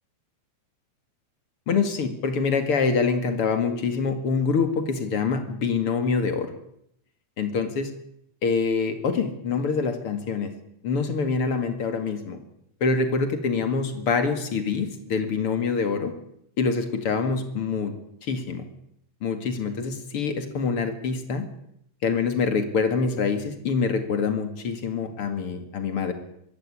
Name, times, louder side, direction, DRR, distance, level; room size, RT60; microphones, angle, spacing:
voice 1, 1.7-6.5 7.4-7.9 8.4-10.5 10.8-12.4 12.8-16.1 16.6-17.9 18.2-18.6 19.2-21.5 22.0-26.1, left 5 dB, 45° left, 8 dB, 1.9 m, -25 dB
24.0 x 13.5 x 9.9 m, 0.76 s
omnidirectional pair, 5.3 m